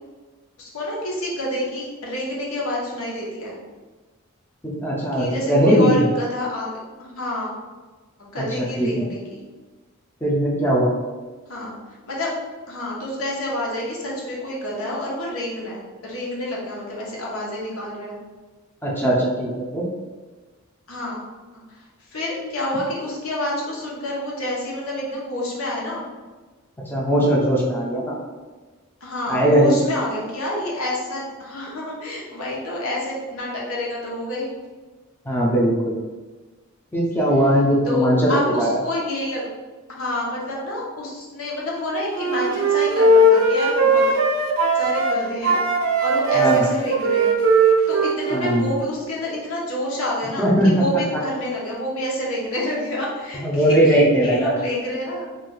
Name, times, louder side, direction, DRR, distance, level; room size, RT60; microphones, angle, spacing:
voice 1, 0.6-3.6 5.1-6.7 7.0-7.5 8.2-9.4 11.5-11.7 12.1-12.3 12.7-18.2 20.9-21.2 21.7-26.0 29.0-34.5 37.9-39.4 40.0-44.0 44.7-45.6 46.0-47.3 47.9-55.2, left 1 dB, 85° left, -4 dB, 0.8 m, -28 dB
voice 2, 4.6-6.0 8.4-9.1 10.2-10.9 18.8-19.9 26.9-28.2 29.3-29.8 35.3-36.0 36.9-38.7 46.3-46.7 48.3-48.7 50.4-50.9 53.4-54.5, equal, 10° left, -4 dB, 0.5 m, -19 dB
Wind instrument woodwind instrument, 42.1-45.2 45.4-48.7, right 2 dB, 80° right, 0.5 m, -18 dB
2.4 x 2.3 x 3.8 m, 1.3 s
head